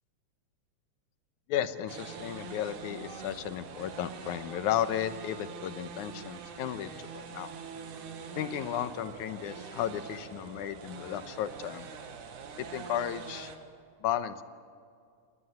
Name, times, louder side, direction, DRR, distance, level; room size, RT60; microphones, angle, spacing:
voice 1, 1.5-7.5 8.4-11.9 12.6-13.5 14.0-14.4, left 10 dB, 85° left, 12 dB, 2.3 m, -34 dB
sound 1, 1.9-13.6, right 6 dB, 85° right, 3.1 m, -44 dB
20.0 x 19.0 x 7.8 m, 2.3 s
omnidirectional pair, 3.4 m